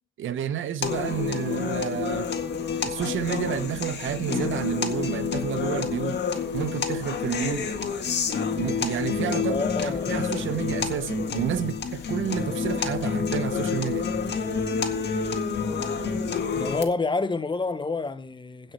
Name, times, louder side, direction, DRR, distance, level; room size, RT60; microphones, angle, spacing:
voice 1, 0.2-2.3 2.8-6.2 6.5-7.7 8.6-9.6 9.8-14.1, right 9 dB, 85° right, 0.9 m, -30 dB
sound 1, 0.8-16.8, left 6 dB, 60° left, 1.9 m, -28 dB
voice 2, 9.5-10.2 16.5-18.7, left 3 dB, 25° left, 0.8 m, -28 dB
16.0 x 5.7 x 5.6 m
cardioid pair, 110°, 20 cm